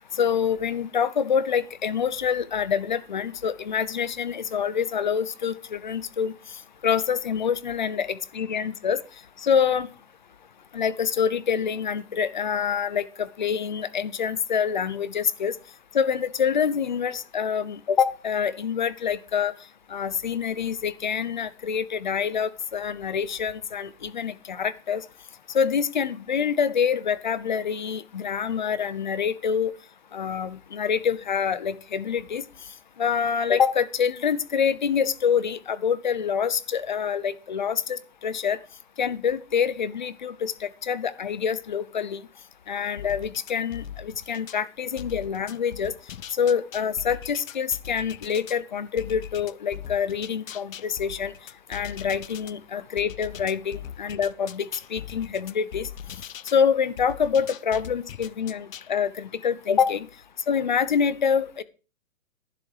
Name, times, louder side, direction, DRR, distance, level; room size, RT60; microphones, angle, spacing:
voice 1, 0.1-9.0 9.4-9.9 10.7-15.5 15.9-19.5 19.9-25.0 25.5-29.7 30.1-32.4 33.0-38.6 39.0-42.2 42.7-45.9 46.3-51.3 51.7-55.9 56.5-60.1 60.5-61.6, left 7 dB, 35° left, 17 dB, 0.8 m, -26 dB
sound 1, 43.0-44.6 45.0-48.6 49.0-52.5 53.0-56.6 57.0-58.9, left 9 dB, 80° left, 0.9 m, -40 dB
11.5 x 10.5 x 4.8 m, 0.33 s
hypercardioid pair, 175°, 39 cm